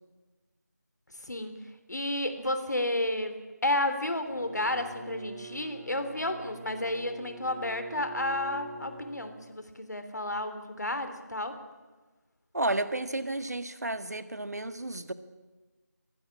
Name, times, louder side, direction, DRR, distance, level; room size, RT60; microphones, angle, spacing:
voice 1, 1.9-3.3 3.6-11.6, left 1 dB, 70° left, 8 dB, 3.4 m, -31 dB
Bowed string instrument, 4.2-9.6, right 3 dB, ahead, 0.6 m, -46 dB
voice 2, 12.5-15.1, right 2 dB, 65° right, 11 dB, 1.8 m, -32 dB
22.5 x 18.0 x 8.7 m, 1.3 s
figure-of-eight pair, 175°, 10 cm